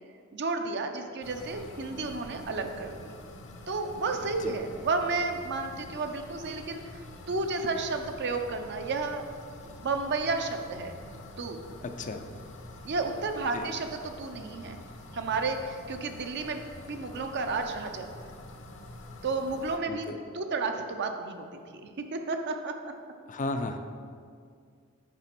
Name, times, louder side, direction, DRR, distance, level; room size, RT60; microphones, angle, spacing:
voice 1, 0.3-3.1 3.7-9.2 9.6-10.9 11.4-11.6 12.8-14.8 15.1-18.1 19.2-20.1 20.3-21.5 21.8-22.9, right 3 dB, 55° right, 5 dB, 0.6 m, -32 dB
sound 1, 1.2-19.8, left 1 dB, 60° left, 0.8 m, -47 dB
voice 2, 12.0-12.3 13.5-13.7 19.9-20.2 23.3-23.8, left 2 dB, 35° left, 7 dB, 0.5 m, -34 dB
6.7 x 5.1 x 6.0 m, 2.1 s
head